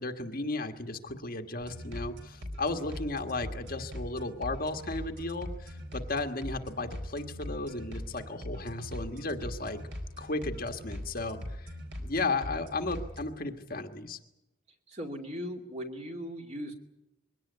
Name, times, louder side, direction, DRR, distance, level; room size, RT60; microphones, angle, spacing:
voice 1, 0.0-9.8 10.2-11.7 12.0-14.2, left 2 dB, 40° left, 5 dB, 1.5 m, -34 dB
sound 1, 1.6-13.2, left 1 dB, 55° right, 4.4 m, -41 dB
voice 2, 14.9-16.8, equal, 30° right, 3 dB, 2.4 m, -38 dB
22.0 x 17.5 x 9.7 m, 0.94 s
head